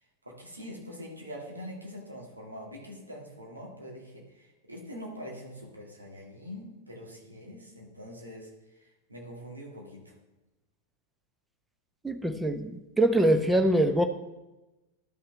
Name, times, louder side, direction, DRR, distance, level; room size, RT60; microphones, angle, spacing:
voice 1, 0.2-10.2, equal, 80° right, -2 dB, 1.8 m, -44 dB
voice 2, 12.0-14.1, right 1 dB, 5° right, 7 dB, 0.6 m, -24 dB
12.0 x 5.7 x 3.3 m, 1.0 s
figure-of-eight pair, 90°, 0 cm